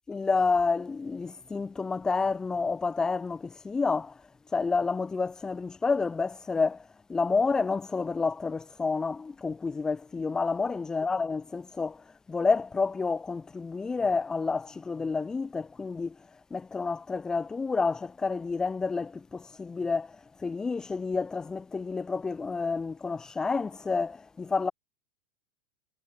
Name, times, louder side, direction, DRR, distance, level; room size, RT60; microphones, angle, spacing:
voice 1, 0.1-4.1 4.5-6.8 7.1-12.0 12.3-16.1 16.5-24.7, left 4 dB, 15° left, 3.2 m, -29 dB
hypercardioid pair, 110°, 4 cm